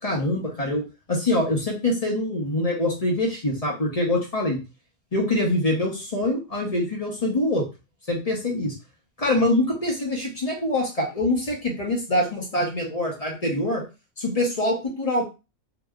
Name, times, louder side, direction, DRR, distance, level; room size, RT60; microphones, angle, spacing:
voice 1, 0.0-0.8 1.1-4.6 5.1-7.7 8.1-8.7 9.2-13.8 14.2-15.2, left 1 dB, 35° left, -1 dB, 0.7 m, -24 dB
2.9 x 2.0 x 3.5 m, 0.29 s
omnidirectional pair, 1.3 m